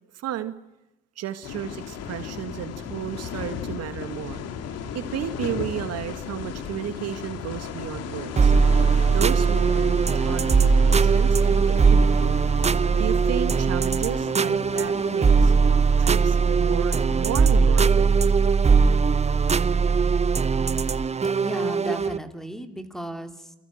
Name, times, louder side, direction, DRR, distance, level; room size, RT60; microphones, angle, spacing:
voice 1, 0.1-0.5 1.2-4.4 4.9-8.5 9.1-12.4 13.0-15.5 16.0-18.1, right 11 dB, 55° right, 10 dB, 1.8 m, -33 dB
sound 1, 1.4-17.2, left 7 dB, 55° left, 2.5 m, -36 dB
sound 2, 8.4-22.2, right 5 dB, 20° right, 0.9 m, -20 dB
voice 2, 21.4-23.5, right 1 dB, ahead, 7 dB, 3.1 m, -35 dB
29.0 x 23.0 x 6.5 m, 0.96 s
hypercardioid pair, 65°, 30 cm